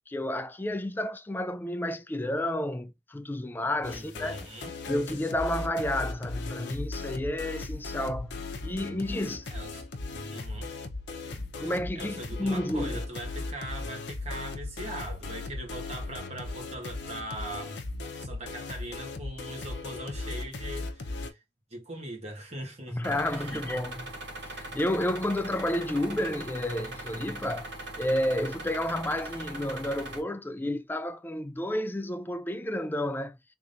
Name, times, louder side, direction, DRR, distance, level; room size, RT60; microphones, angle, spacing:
voice 1, 0.0-4.4 4.9-9.5 11.3-13.0 22.9-24.2 24.4-27.7 28.0-33.4, left 1 dB, 10° left, 0.4 m, -31 dB
sound 1, 3.8-21.3, left 3 dB, 75° left, 0.8 m, -37 dB
voice 2, 3.9-4.7 9.4-9.8 10.3-10.7 11.9-17.8 18.2-21.4 21.7-23.0 23.3-23.6, right 1 dB, 35° right, 1.5 m, -40 dB
sound 2, 23.0-30.2, right 1 dB, 65° right, 1.8 m, -40 dB
3.6 x 3.4 x 2.6 m
head